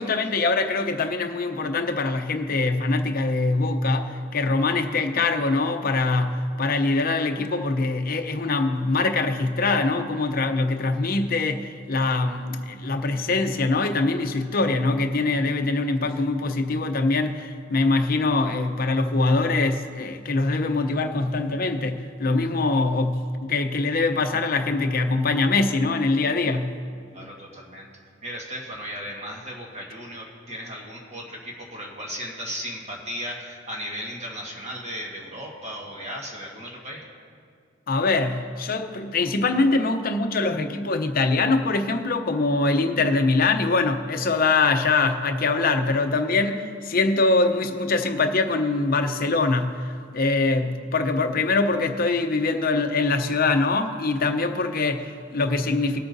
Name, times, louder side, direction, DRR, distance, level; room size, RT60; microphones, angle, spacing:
voice 1, 0.0-26.8 37.9-56.0, left 3 dB, 45° left, 0.7 m, -23 dB
voice 2, 27.1-27.9 28.2-37.1, equal, 35° right, 1.5 m, -36 dB
20.5 x 8.5 x 2.7 m
head